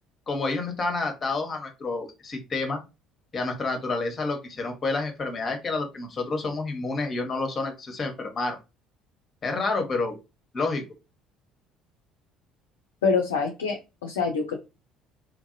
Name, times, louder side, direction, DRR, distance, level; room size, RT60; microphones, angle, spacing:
voice 1, 0.3-2.8 3.3-8.6 9.4-10.1 10.5-10.8, left 3 dB, 35° left, 4 dB, 1.0 m, -29 dB
voice 2, 13.0-14.6, left 5 dB, 75° left, 3 dB, 0.5 m, -25 dB
3.0 x 2.6 x 2.6 m, 0.26 s
figure-of-eight pair, 55°, 0 cm